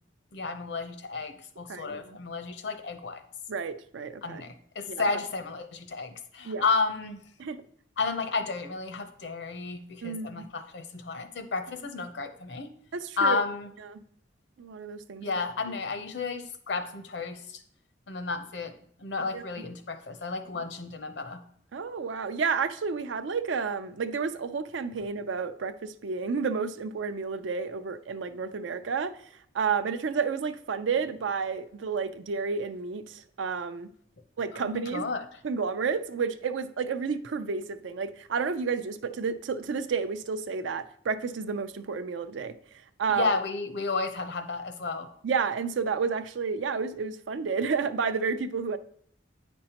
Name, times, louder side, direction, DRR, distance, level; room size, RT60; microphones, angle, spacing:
voice 1, 0.3-3.2 4.2-7.2 8.0-12.7 13.2-13.7 15.2-17.6 18.1-18.7 19.0-21.4 34.5-35.2 43.1-45.1, left 4 dB, 65° left, 8 dB, 0.7 m, -32 dB
voice 2, 1.7-2.2 3.5-4.4 4.9-5.0 6.4-6.6 7.4-7.6 10.0-10.5 12.9-13.4 13.9-14.0 14.6-15.3 19.3-19.6 21.7-29.1 29.5-33.9 34.4-35.0 35.4-42.5 43.0-43.3 45.2-48.8, right 5 dB, 85° right, 11 dB, 0.5 m, -31 dB
8.6 x 5.3 x 2.9 m, 0.64 s
head